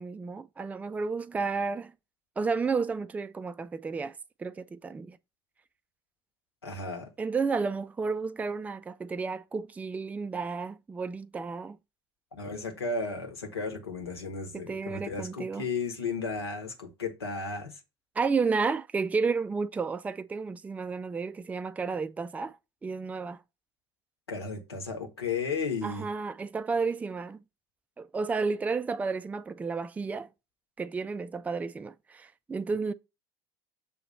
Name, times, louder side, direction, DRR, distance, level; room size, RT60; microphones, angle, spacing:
voice 1, 0.0-1.9 2.4-5.2 7.2-11.8 14.5-15.7 18.2-22.6 22.8-23.4 25.8-27.4 28.0-30.3 30.8-32.9, right 4 dB, 10° right, 0.3 m, -32 dB
voice 2, 6.6-7.1 12.3-17.8 24.3-26.1, left 4 dB, 80° left, 1.3 m, -34 dB
7.0 x 2.9 x 5.3 m
figure-of-eight pair, 65°, 13 cm